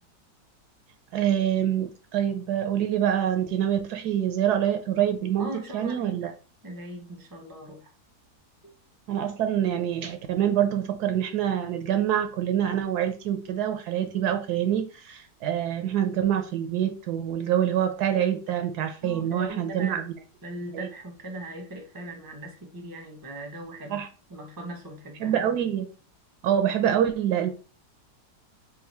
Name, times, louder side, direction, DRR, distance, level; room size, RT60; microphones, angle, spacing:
voice 1, 1.1-6.3 9.1-20.1 20.7-20.9 23.9-24.1 25.2-25.9 26.4-27.5, right 10 dB, 75° right, 1.1 m, -26 dB
voice 2, 5.4-6.3 6.6-7.9 8.6-8.7 19.0-20.0 20.4-24.0 24.3-25.4, right 1 dB, 20° right, 0.6 m, -39 dB
3.8 x 2.3 x 4.3 m
omnidirectional pair, 1.8 m